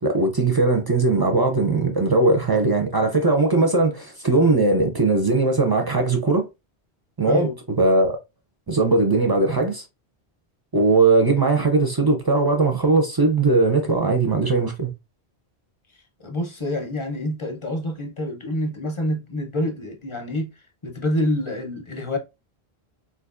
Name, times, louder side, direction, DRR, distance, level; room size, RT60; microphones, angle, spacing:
voice 1, 0.0-6.5 7.2-8.2 8.7-9.8 10.7-14.9, right 3 dB, 35° right, 0.4 m, -19 dB
voice 2, 7.2-7.5 16.2-20.5 20.8-22.2, left 1 dB, 30° left, 0.7 m, -27 dB
3.9 x 2.5 x 2.4 m
omnidirectional pair, 1.1 m